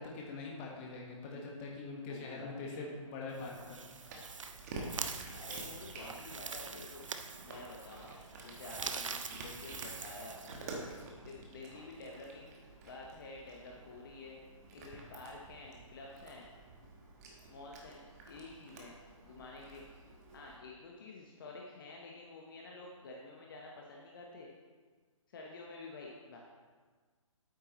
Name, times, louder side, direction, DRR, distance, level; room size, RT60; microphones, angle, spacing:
voice 1, 0.0-3.8, left 3 dB, 20° left, -2 dB, 1.4 m, -43 dB
voice 2, 2.0-2.9 5.3-7.1 7.4-8.1 8.4-10.7 11.2-12.6 12.8-14.4 14.7-16.5 17.5-18.0 18.3-19.0 19.2-19.9 20.3-24.5 25.3-26.4, left 3 dB, 40° left, -1 dB, 1.0 m, -50 dB
sound 1, 3.3-11.0, right 5 dB, 65° right, 0.7 m, -44 dB
Cat, 3.4-20.6, right 2 dB, 30° right, 1.2 m, -50 dB
8.8 x 8.6 x 3.0 m, 1.5 s
figure-of-eight pair, 140°, 17 cm